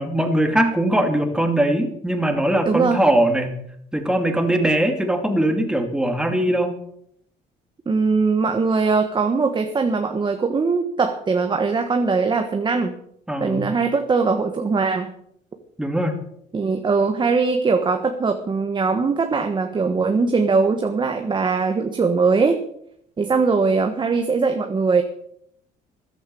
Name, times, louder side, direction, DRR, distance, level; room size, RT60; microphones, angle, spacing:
voice 1, 0.0-3.6 3.9-6.7 13.3-13.7 15.8-16.2, right 1 dB, 5° right, 5 dB, 2.7 m, -21 dB
voice 2, 2.6-3.0 7.8-12.9 13.4-15.1 16.5-22.6 23.2-25.0, right 4 dB, 25° right, 5 dB, 1.4 m, -21 dB
14.0 x 11.5 x 7.0 m, 0.71 s
cardioid pair, 110°, 17 cm